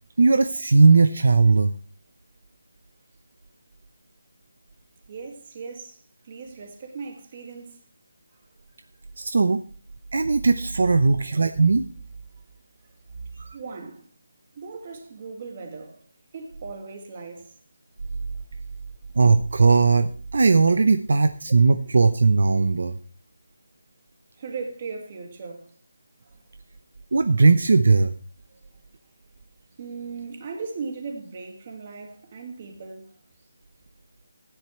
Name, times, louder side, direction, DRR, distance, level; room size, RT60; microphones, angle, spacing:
voice 1, 0.2-1.7 9.2-9.6 10.1-11.9 13.4-13.5 19.1-23.0 27.1-28.1, right 4 dB, 60° right, 0.7 m, -18 dB
voice 2, 5.1-6.0 6.2-7.8 13.5-14.1 14.5-16.0 16.3-17.5 24.3-25.7 26.3-26.4 28.5-28.6 29.8-33.1, right 4 dB, 25° right, 2.0 m, -37 dB
16.0 x 10.0 x 3.2 m
hypercardioid pair, 175°, 0 cm